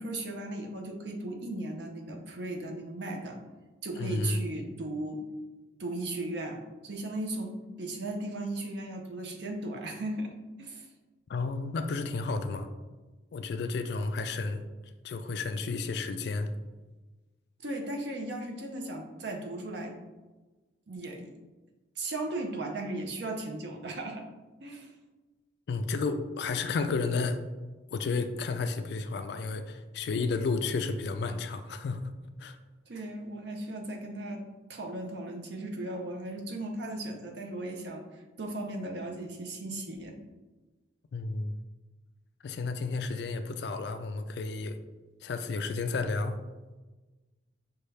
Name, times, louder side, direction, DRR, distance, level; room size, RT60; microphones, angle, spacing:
voice 1, 0.0-3.4 3.8-5.2 5.8-10.3 10.6-10.9 17.6-19.9 20.9-21.3 22.0-24.2 24.6-24.9 32.9-40.2, right 2 dB, 60° right, 2 dB, 0.6 m, -37 dB
voice 2, 4.0-4.4 11.3-12.7 13.3-14.7 15.0-16.5 25.7-27.4 27.9-32.1 32.4-32.6 41.1-41.5 42.4-44.8 45.2-46.4, left 3 dB, 60° left, 9 dB, 0.3 m, -32 dB
5.4 x 2.3 x 3.2 m, 1.2 s
head